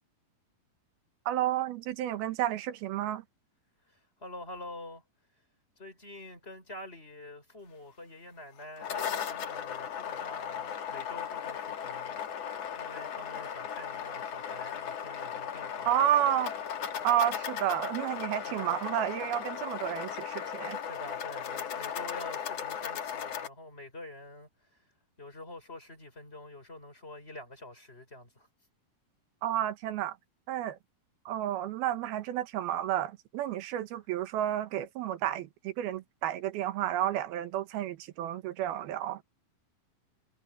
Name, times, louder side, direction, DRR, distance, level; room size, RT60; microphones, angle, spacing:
voice 1, 1.3-3.2 15.9-16.5 17.0-20.8 29.4-30.2 30.5-30.8 31.3-39.2, right 12 dB, 85° right, 3.1 m, -31 dB
voice 2, 3.9-5.0 5.8-12.2 12.8-16.0 18.5-18.7 20.5-24.9 25.2-28.5, left 1 dB, 15° left, 5.9 m, -47 dB
sound 1, 8.6-23.5, left 8 dB, 55° left, 2.2 m, -37 dB
omnidirectional pair, 4.3 m